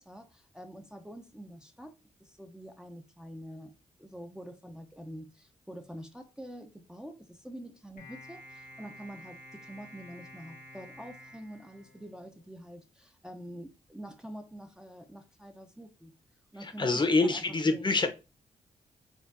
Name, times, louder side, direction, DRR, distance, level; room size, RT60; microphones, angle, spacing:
voice 1, 0.0-3.7 4.0-16.1 16.5-18.0, equal, 5° right, 0.6 m, -46 dB
sound 1, 8.0-12.5, equal, 80° left, 1.1 m, -51 dB
voice 2, 16.6-18.1, left 3 dB, 35° left, 0.7 m, -26 dB
4.4 x 2.5 x 2.5 m
cardioid pair, 60°, 13 cm